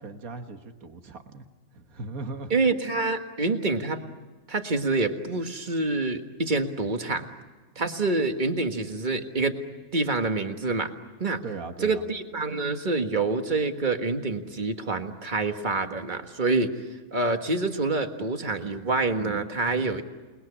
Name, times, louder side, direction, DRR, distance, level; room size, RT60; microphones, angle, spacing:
voice 1, 0.0-1.4 1.7-2.6 11.4-12.1, right 3 dB, 85° right, 6 dB, 1.9 m, -38 dB
voice 2, 2.5-4.0 4.5-7.2 7.7-9.6 9.9-10.9 11.2-11.4 11.8-16.7 17.1-20.0, right 3 dB, 35° right, 6 dB, 1.7 m, -26 dB
28.5 x 21.0 x 9.9 m, 1.3 s
omnidirectional pair, 1.5 m